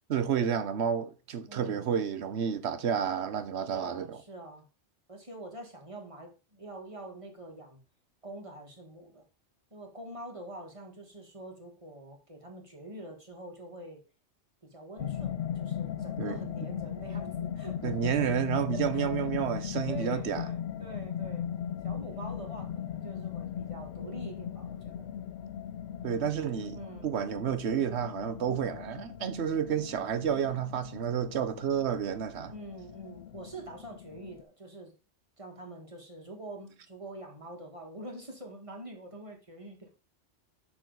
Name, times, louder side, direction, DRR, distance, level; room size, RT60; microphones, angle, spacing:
voice 1, 0.1-4.2 16.2-16.4 17.8-20.4 26.0-32.5, right 8 dB, 75° right, 1.1 m, -30 dB
voice 2, 1.5-1.9 3.7-4.7 5.1-7.8 8.2-9.2 9.7-14.0 14.6-18.3 18.7-21.5 21.8-25.1 26.7-27.1 32.4-34.9 35.4-39.9, right 1 dB, 30° right, 1.7 m, -45 dB
sound 1, 15.0-34.4, left 9 dB, 65° left, 0.7 m, -38 dB
7.0 x 6.0 x 3.9 m
omnidirectional pair, 1.2 m